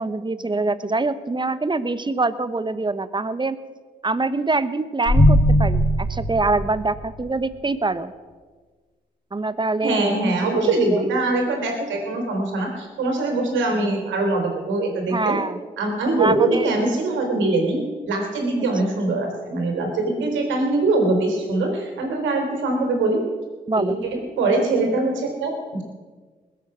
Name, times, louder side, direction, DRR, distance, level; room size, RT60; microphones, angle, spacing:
voice 1, 0.0-3.6 4.0-8.1 9.3-10.2 10.6-11.0 15.1-15.6 16.2-16.7 23.7-24.0, right 3 dB, 25° right, 14 dB, 1.1 m, -24 dB
sound 1, 5.1-7.3, equal, 50° left, 2.5 m, -19 dB
voice 2, 9.8-15.4 15.8-17.8 18.1-23.2 23.8-25.8, right 2 dB, 75° right, 2 dB, 3.7 m, -22 dB
20.5 x 8.2 x 6.1 m, 1.4 s
hypercardioid pair, 40°, 19 cm